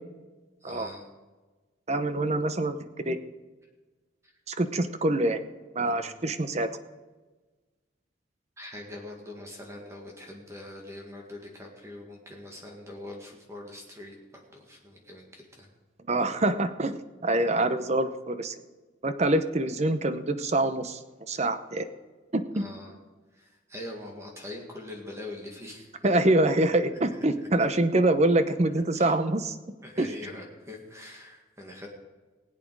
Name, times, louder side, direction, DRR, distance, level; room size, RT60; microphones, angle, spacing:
voice 1, 0.6-1.1 4.2-4.3 5.8-6.2 8.6-15.7 17.3-17.4 22.5-22.9 23.3-26.0 26.4-26.5 27.2-27.3 28.9-29.2 29.8-31.9, left 1 dB, 15° right, 0 dB, 1.9 m, -43 dB
voice 2, 1.9-2.8 3.0-3.2 4.5-5.4 5.8-6.7 16.1-16.9 17.2-18.5 19.0-21.0 21.3-21.9 22.3-22.6 26.0-29.5 30.0-30.1, right 2 dB, 35° right, 10 dB, 0.8 m, -25 dB
20.0 x 8.6 x 4.8 m, 1.3 s
head